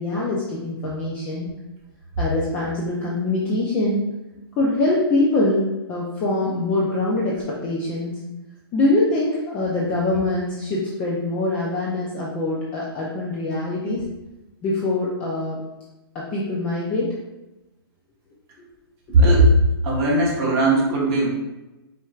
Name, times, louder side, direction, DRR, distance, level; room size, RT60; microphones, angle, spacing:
voice 1, 0.0-1.5 2.2-4.1 4.6-8.2 8.7-14.0 14.6-15.6 16.1-17.2 19.1-19.2, left 2 dB, 10° left, -5 dB, 0.3 m, -23 dB
voice 2, 19.1-19.5 19.8-21.3, right 1 dB, 25° right, -5 dB, 1.1 m, -17 dB
4.4 x 4.4 x 2.4 m, 1.0 s
hypercardioid pair, 170°, 13 cm